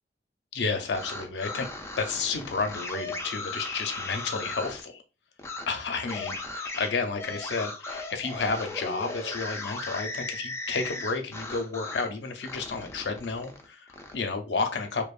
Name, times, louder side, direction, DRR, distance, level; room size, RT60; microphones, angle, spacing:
voice 1, 0.5-1.7 2.0-5.0 5.7-15.1, left 4 dB, 70° left, 6 dB, 0.5 m, -31 dB
sound 1, 0.8-4.8 5.4-5.6 6.1-12.1 12.4-14.1, left 2 dB, 15° left, 0.4 m, -37 dB
2.8 x 2.1 x 2.3 m, 0.31 s
head